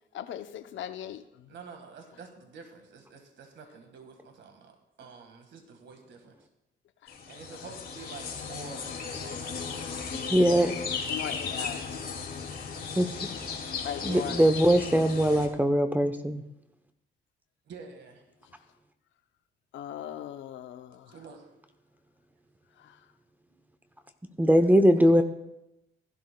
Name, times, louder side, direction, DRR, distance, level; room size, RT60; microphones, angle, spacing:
voice 1, 0.1-1.5 7.0-7.1 7.5-7.7 11.1-12.0 13.8-14.4 18.4-18.5 19.7-21.2 22.8-23.0, left 10 dB, 70° left, 9 dB, 0.7 m, -39 dB
voice 2, 1.5-6.5 7.3-10.0 11.3-11.6 14.0-14.5 17.7-18.2 21.1-21.5 23.5-23.6 24.9-25.2, right 4 dB, 65° right, 5 dB, 1.7 m, -48 dB
sound 1, 7.1-15.5, left 5 dB, 50° left, 2.2 m, -36 dB
voice 3, 10.3-10.7 12.9-13.1 14.0-16.4 24.4-25.2, equal, 10° right, 8 dB, 0.8 m, -21 dB
16.0 x 11.5 x 2.2 m, 0.88 s
cardioid pair, 90°, 20 cm